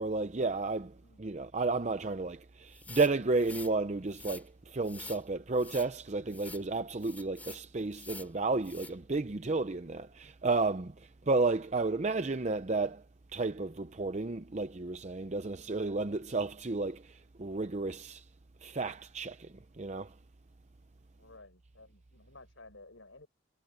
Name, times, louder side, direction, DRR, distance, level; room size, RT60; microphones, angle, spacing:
voice 1, 0.0-13.0 13.3-18.3 18.6-20.1, right 3 dB, 35° right, 0.6 m, -32 dB
sound 1, 2.7-3.7 4.1-4.4 4.8-5.2 5.6-5.9 6.3-6.6 7.0-7.6 7.9-8.3 8.6-8.9, left 3 dB, 10° left, 3.6 m, -47 dB
voice 2, 21.1-23.3, left 2 dB, 75° left, 5.2 m, -55 dB
head